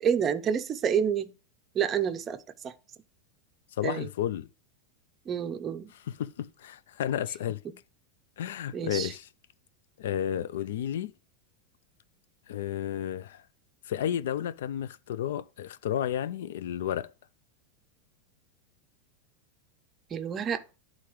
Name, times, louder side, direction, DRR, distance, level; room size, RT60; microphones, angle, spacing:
voice 1, 0.0-1.3 1.7-2.7 3.8-4.1 5.3-5.9 8.7-9.1 20.1-20.6, right 8 dB, 20° right, 0.5 m, -28 dB
voice 2, 3.8-4.5 5.9-7.6 8.4-9.3 10.0-11.1 12.5-13.4 13.9-17.1, left 10 dB, 85° left, 0.4 m, -32 dB
11.5 x 3.8 x 3.0 m
supercardioid pair, 160°, 0 cm